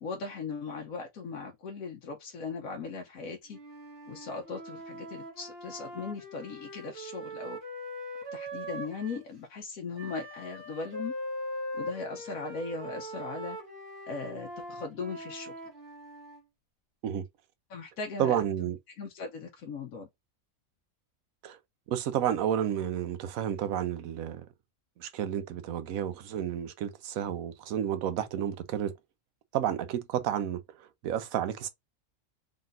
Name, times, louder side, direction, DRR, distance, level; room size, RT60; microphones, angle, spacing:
voice 1, 0.0-3.6 4.1-7.6 8.3-11.1 11.7-13.6 14.1-15.5 17.7-18.4 18.9-20.1, left 4 dB, 85° left, 1.2 m, -38 dB
Wind instrument woodwind instrument, 3.5-9.3 9.9-16.4, equal, 50° right, 1.7 m, -41 dB
voice 2, 18.2-18.8 21.4-21.6 21.9-24.5 25.0-28.9 29.5-30.6 31.0-31.7, right 10 dB, 85° right, 1.1 m, -31 dB
4.0 x 3.6 x 2.5 m
omnidirectional pair, 1.4 m